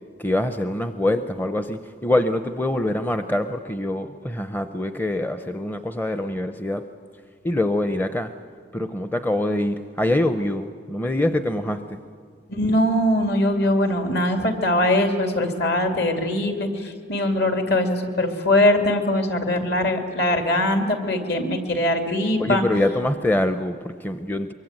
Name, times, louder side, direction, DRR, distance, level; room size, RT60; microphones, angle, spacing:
voice 1, 0.2-6.8 7.4-8.3 8.7-12.0 22.4-24.5, left 1 dB, 10° left, 9 dB, 0.6 m, -24 dB
voice 2, 12.5-22.6, left 1 dB, 60° left, 5 dB, 2.7 m, -21 dB
23.5 x 23.5 x 9.0 m, 2.1 s
head